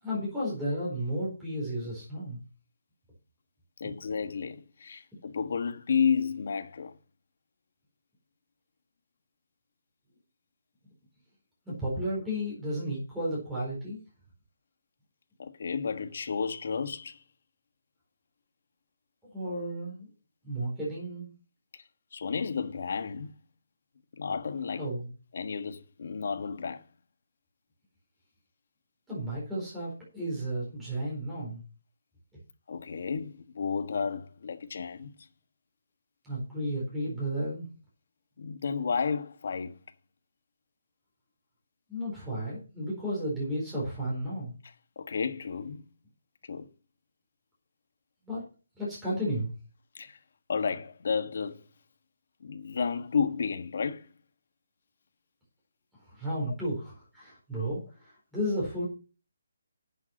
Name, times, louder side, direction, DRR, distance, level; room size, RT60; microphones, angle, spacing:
voice 1, 0.0-2.4 3.8-3.9 11.7-14.0 19.3-20.1 20.4-21.3 24.8-25.1 29.1-31.6 36.2-37.7 41.9-44.6 48.2-48.4 48.7-49.5 56.1-58.9, equal, 5° right, 4.4 m, -33 dB
voice 2, 3.8-6.9 15.4-17.2 22.1-23.3 24.1-24.9 25.3-26.8 32.7-35.1 38.4-39.8 45.0-45.8 46.4-46.7 49.9-50.2 50.5-51.6 52.4-54.1, left 6 dB, 50° left, 1.4 m, -32 dB
11.0 x 7.7 x 5.4 m
hypercardioid pair, 175°, 0 cm